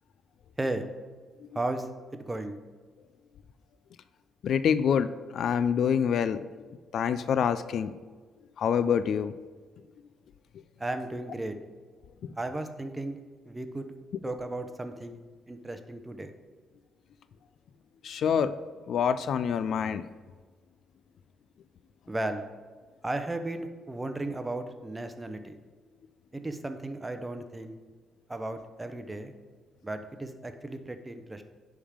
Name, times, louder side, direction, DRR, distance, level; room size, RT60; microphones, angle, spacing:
voice 1, 1.5-1.9 2.1-2.6 10.8-11.6 12.4-13.2 13.5-13.9 14.2-15.2 15.5-16.3 22.1-22.5 23.0-25.6 26.3-27.8 28.3-29.3 29.8-31.5, right 2 dB, 15° right, 8 dB, 0.7 m, -35 dB
voice 2, 4.4-6.4 6.9-7.9 8.6-9.3 12.2-12.3 18.0-18.5 18.9-20.0, left 7 dB, 65° left, 13 dB, 0.3 m, -26 dB
10.0 x 3.6 x 5.0 m, 1.5 s
cardioid pair, 90°, 0 cm